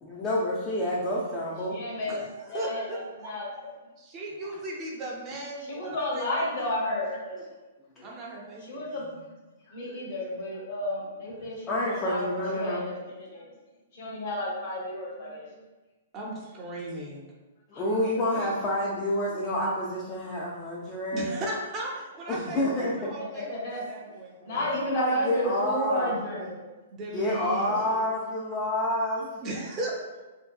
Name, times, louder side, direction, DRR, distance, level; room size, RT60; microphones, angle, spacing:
voice 1, 0.0-1.8 7.3-7.4 8.0-8.1 11.7-12.9 17.8-21.4 22.3-23.1 24.6-26.2 27.1-29.4, left 1 dB, 25° left, -6 dB, 0.5 m, -28 dB
voice 2, 1.7-2.2 2.5-3.5 5.7-7.2 8.6-9.2 9.7-12.3 12.5-13.5 13.9-15.5 17.7-17.8 22.4-22.6 23.3-23.8 24.5-26.7 27.6-28.0, left 1 dB, 55° left, -3 dB, 0.9 m, -32 dB
voice 3, 2.4-3.3 4.0-6.5 8.0-9.2 16.1-17.2 21.1-24.7 26.9-27.7 29.4-30.2, right 1 dB, 30° right, -2 dB, 0.5 m, -37 dB
2.7 x 2.2 x 2.2 m, 1.2 s
hypercardioid pair, 130°, 0 cm